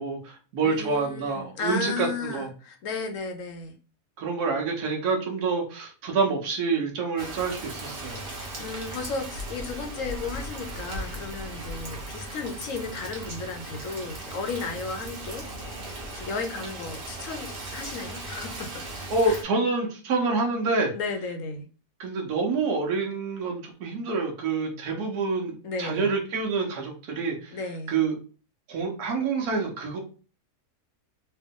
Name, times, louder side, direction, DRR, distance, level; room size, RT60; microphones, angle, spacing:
voice 1, 0.0-2.5 4.2-8.2 19.1-20.9 22.0-27.5 27.9-28.1 28.7-30.0, right 4 dB, 70° right, 1 dB, 1.4 m, -27 dB
voice 2, 0.6-3.7 8.3-15.8 16.1-18.8 19.2-19.4 20.9-21.7 25.6-26.1 27.5-28.0, left 4 dB, 65° left, 5 dB, 0.9 m, -34 dB
Rain, 7.2-19.4, right 1 dB, 40° right, 1.0 m, -37 dB
3.2 x 2.9 x 3.6 m, 0.37 s
omnidirectional pair, 1.7 m